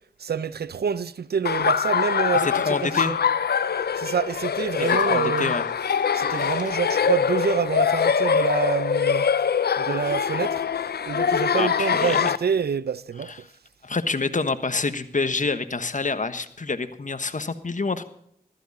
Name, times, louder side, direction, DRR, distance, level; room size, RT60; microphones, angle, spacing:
voice 1, 0.2-3.2 3.9-5.5 6.1-9.3 9.8-10.6 11.1-13.3, right 6 dB, 75° right, 0.6 m, -27 dB
Laughter, 1.4-12.4, left 7 dB, 75° left, 0.6 m, -23 dB
voice 2, 2.4-3.2 4.8-5.7 6.2-6.5 11.6-12.3 13.2-13.4 13.8-18.0, left 4 dB, 50° left, 1.4 m, -27 dB
14.5 x 14.0 x 4.2 m
cardioid pair, 40°, 16 cm